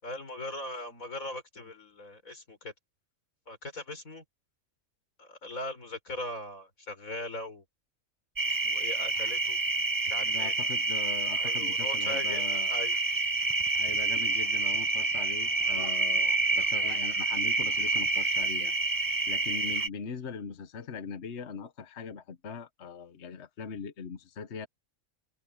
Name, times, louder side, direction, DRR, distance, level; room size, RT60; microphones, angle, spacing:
voice 1, 0.0-2.7 3.5-4.2 5.2-7.6 8.5-9.6 10.0-10.5 11.4-13.0, left 1 dB, 90° left, 5.8 m, -39 dB
sound 1, 8.4-19.9, right 3 dB, 20° right, 0.7 m, -28 dB
voice 2, 10.2-12.7 13.7-18.7 19.3-24.7, left 6 dB, 60° left, 1.3 m, -41 dB
open air
omnidirectional pair, 1.4 m